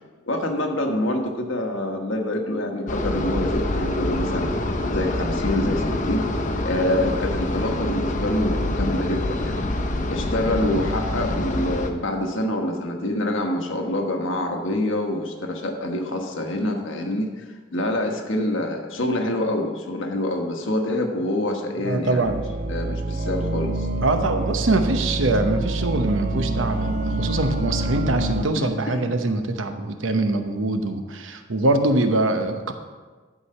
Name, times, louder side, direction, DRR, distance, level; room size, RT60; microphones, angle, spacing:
voice 1, 0.3-4.5 4.9-6.3 6.6-9.6 10.1-17.4 17.7-22.3 22.7-23.9 28.6-29.1, left 1 dB, 85° left, 2 dB, 1.3 m, -26 dB
sound 1, 2.9-11.9, left 1 dB, 40° left, 0.7 m, -26 dB
voice 2, 21.8-22.4 24.0-32.7, right 2 dB, 85° right, 7 dB, 0.9 m, -23 dB
sound 2, 22.2-28.5, right 2 dB, 45° right, 0.5 m, -26 dB
11.5 x 4.8 x 5.6 m, 1.4 s
head